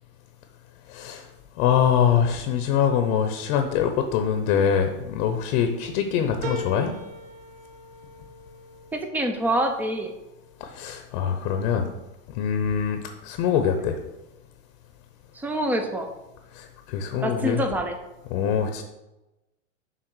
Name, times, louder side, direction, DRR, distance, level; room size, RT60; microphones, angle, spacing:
voice 1, 0.9-1.2 1.6-6.9 10.6-11.9 12.3-14.0 16.5-17.6 18.3-18.8, left 8 dB, 40° left, 6 dB, 0.8 m, -24 dB
sound 1, 6.4-11.2 11.7-12.4 12.7-12.8, right 1 dB, 80° right, 1.6 m, -40 dB
voice 2, 8.9-10.1 15.3-16.1 17.2-18.0, right 1 dB, 5° right, 5 dB, 0.4 m, -26 dB
6.6 x 3.7 x 6.2 m, 1.0 s
hypercardioid pair, 135°, 38 cm